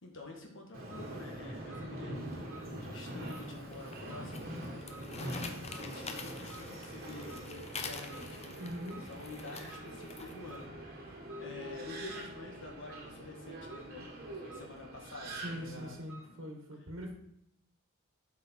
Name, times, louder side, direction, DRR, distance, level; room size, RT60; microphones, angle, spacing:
voice 1, 0.0-4.4 4.9-8.6 9.1-14.1 14.4-16.0, left 2 dB, 60° left, 0 dB, 1.6 m, -48 dB
Subway metro underground, 0.7-16.0, right 1 dB, 45° right, 1.5 m, -44 dB
sound 1, 0.8-16.4, right 3 dB, 5° right, 3.3 m, -58 dB
sound 2, 3.2-10.6, left 5 dB, 30° left, 0.6 m, -47 dB
voice 2, 8.6-9.1 15.2-17.2, equal, 65° right, 2 dB, 1.4 m, -42 dB
7.9 x 4.8 x 4.5 m, 0.78 s
head